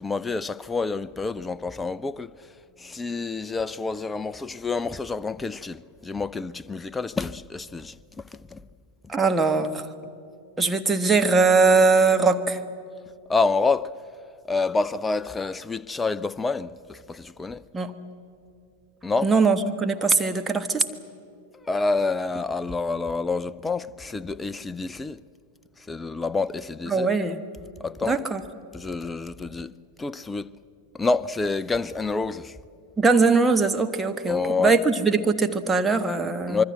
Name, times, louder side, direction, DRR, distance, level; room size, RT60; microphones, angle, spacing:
voice 1, 0.0-2.3 2.8-8.0 8.3-8.6 13.3-13.9 14.5-17.6 19.0-19.3 21.6-25.2 25.9-27.1 27.8-28.2 28.7-29.7 30.0-30.5 30.9-32.6 34.3-34.8 36.5-36.6, left 3 dB, 10° left, 0.6 m, -28 dB
voice 2, 9.1-9.9 10.6-12.6 17.7-17.9 19.2-20.8 26.9-27.4 28.0-28.4 33.0-36.6, right 4 dB, 10° right, 1.4 m, -21 dB
25.0 x 23.5 x 7.7 m
figure-of-eight pair, 90°, 0 cm